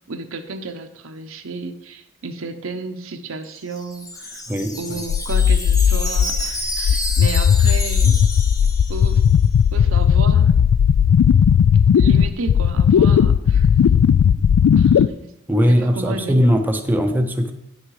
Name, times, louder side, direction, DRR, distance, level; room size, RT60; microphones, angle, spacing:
voice 1, 0.1-4.4 4.7-8.2 8.9-9.2 9.7-10.5 11.9-13.7 14.8-15.3 15.7-16.4, right 3 dB, 70° right, 7 dB, 0.8 m, -32 dB
Wind chime, 3.4-9.4, left 1 dB, 15° left, 1.0 m, -30 dB
voice 2, 4.5-4.8 15.5-17.5, equal, 10° right, 4 dB, 0.6 m, -19 dB
sound 1, 5.1-15.1, left 8 dB, 85° left, 0.3 m, -16 dB
9.0 x 6.4 x 4.8 m, 0.81 s
head